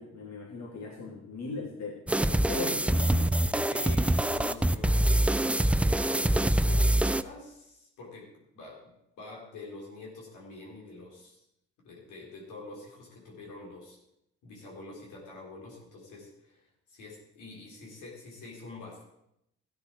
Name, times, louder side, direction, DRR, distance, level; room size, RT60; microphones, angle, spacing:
voice 1, 0.0-3.6, left 4 dB, 60° left, -1 dB, 2.8 m, -39 dB
sound 1, 2.1-7.2, right 1 dB, 5° right, 0.3 m, -25 dB
voice 2, 3.6-11.4 11.8-14.0 14.4-16.6 16.9-19.0, left 3 dB, 90° left, -2 dB, 3.8 m, -46 dB
13.5 x 9.6 x 4.6 m, 0.81 s
cardioid pair, 90°, 30 cm